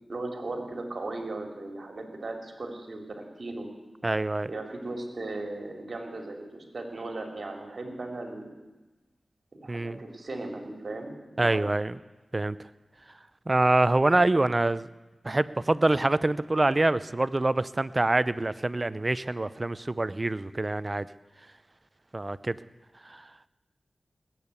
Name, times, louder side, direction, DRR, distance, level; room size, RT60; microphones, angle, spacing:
voice 1, 0.1-3.7 4.5-8.5 9.5-11.7, right 2 dB, 65° right, 3 dB, 2.9 m, -37 dB
voice 2, 4.0-4.5 9.7-10.0 11.4-12.0 12.3-12.6 13.5-14.9 15.2-21.1 22.1-22.6 23.1-23.2, right 2 dB, 35° right, 16 dB, 0.6 m, -25 dB
19.5 x 8.9 x 8.3 m, 1.2 s
cardioid pair, 40°, 0 cm